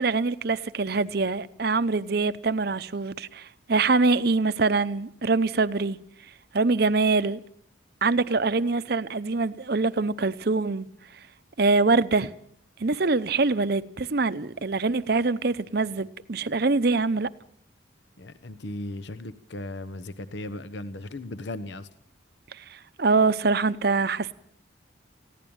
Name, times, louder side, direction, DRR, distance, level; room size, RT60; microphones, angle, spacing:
voice 1, 0.0-6.0 6.5-7.4 8.0-10.9 11.6-12.3 12.8-17.3 22.5-24.3, right 3 dB, 50° right, 0.7 m, -24 dB
voice 2, 18.2-21.9, left 1 dB, 65° left, 0.9 m, -37 dB
20.0 x 15.5 x 8.8 m
head